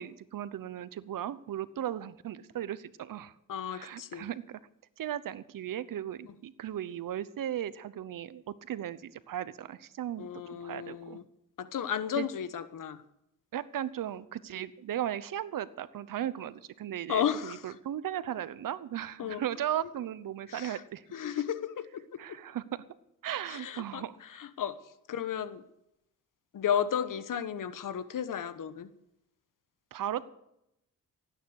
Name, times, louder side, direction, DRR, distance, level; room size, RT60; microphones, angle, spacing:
voice 1, 0.0-3.3 3.7-4.6 5.0-11.2 12.2-12.3 13.5-21.0 22.2-22.8 23.2-24.2 29.9-30.3, right 11 dB, 75° right, 16 dB, 0.9 m, -36 dB
voice 2, 3.5-4.3 10.2-11.2 11.6-13.0 17.1-17.7 19.2-19.4 20.5-20.8 21.1-22.4 23.5-24.0 24.3-24.8 25.1-25.6 26.5-28.9, left 9 dB, 70° left, 13 dB, 1.2 m, -33 dB
17.0 x 9.4 x 6.5 m, 0.81 s
cardioid pair, 70°, 33 cm